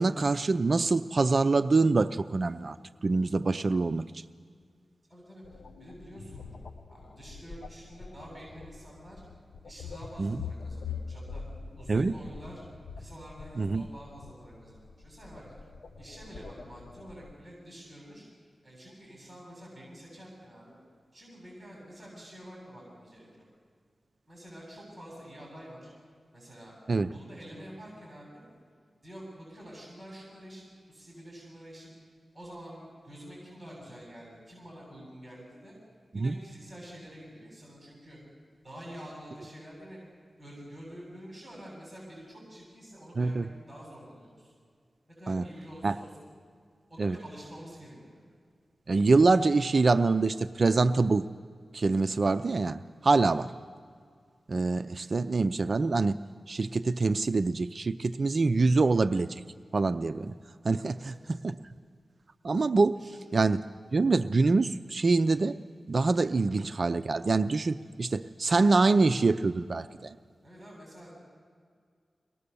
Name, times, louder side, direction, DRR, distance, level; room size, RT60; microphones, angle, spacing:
voice 1, 0.0-2.8 3.0-4.2 10.2-10.3 11.9-12.1 13.6-13.9 26.9-27.1 36.1-36.3 43.2-43.4 45.3-45.5 45.8-45.9 47.0-47.2 48.9-51.3 51.7-53.5 54.5-56.2 56.5-59.4 59.7-60.3 60.6-61.6 62.4-63.0 63.3-63.6 63.9-65.6 65.9-70.1, right 3 dB, 55° right, 11 dB, 0.5 m, -25 dB
voice 2, 5.1-5.4 5.8-6.5 6.9-9.2 9.6-11.4 11.7-12.6 13.0-15.4 16.0-18.2 18.6-20.8 21.1-23.4 24.3-25.9 26.3-26.8 27.1-28.4 29.0-31.9 32.3-35.7 36.1-38.2 38.6-40.0 40.4-44.5 45.2-46.2 46.9-48.2 53.1-53.4 60.9-61.2 62.9-63.2 70.4-71.1, equal, 15° right, -3 dB, 7.6 m, -47 dB
sound 1, 5.4-17.3, left 5 dB, 75° left, 1.0 m, -44 dB
24.0 x 19.5 x 6.9 m, 2.1 s
wide cardioid pair, 70°, 0 cm